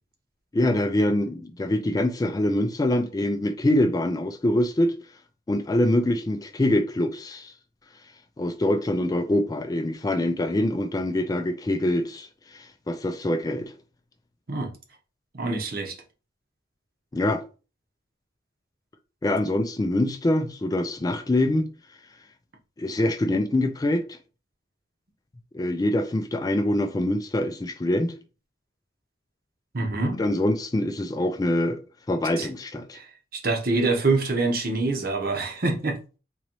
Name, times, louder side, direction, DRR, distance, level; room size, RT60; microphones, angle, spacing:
voice 1, 0.5-4.9 5.5-7.5 8.4-13.7 17.1-17.4 19.2-21.7 22.8-24.2 25.5-28.1 30.2-31.8 32.1-33.0, left 1 dB, 20° left, 0.3 m, -24 dB
voice 2, 15.3-16.0 29.7-30.2 32.4-32.5 32.9-33.1 33.3-36.0, right 3 dB, 55° right, 0.9 m, -25 dB
3.8 x 3.0 x 3.0 m
head